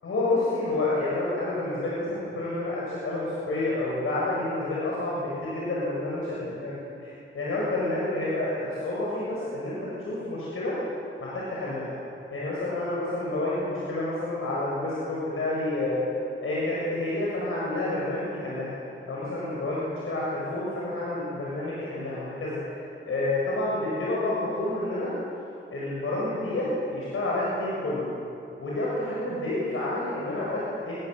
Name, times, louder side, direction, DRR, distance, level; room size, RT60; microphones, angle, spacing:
voice 1, 0.0-10.8 11.2-11.9 12.3-16.1 16.4-18.8 19.1-25.1 25.7-28.1 28.6-31.0, left 2 dB, 90° left, -6 dB, 7.3 m, -29 dB
27.0 x 23.5 x 8.3 m, 2.8 s
wide cardioid pair, 115°, 21 cm